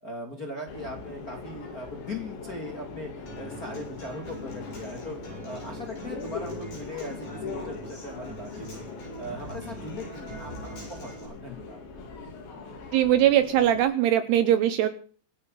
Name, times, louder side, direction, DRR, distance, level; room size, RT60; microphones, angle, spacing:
voice 1, 0.0-5.2 5.4-8.9 9.2-11.8, left 1 dB, 25° left, 1 dB, 2.2 m, -39 dB
Subway metro underground, 0.7-13.8, left 4 dB, 70° left, 5.4 m, -40 dB
Human voice / Acoustic guitar, 3.3-11.2, right 1 dB, 55° left, 9.2 m, -43 dB
voice 2, 12.9-14.9, right 11 dB, 75° right, 10 dB, 2.7 m, -21 dB
26.0 x 11.0 x 4.1 m, 0.43 s
omnidirectional pair, 5.4 m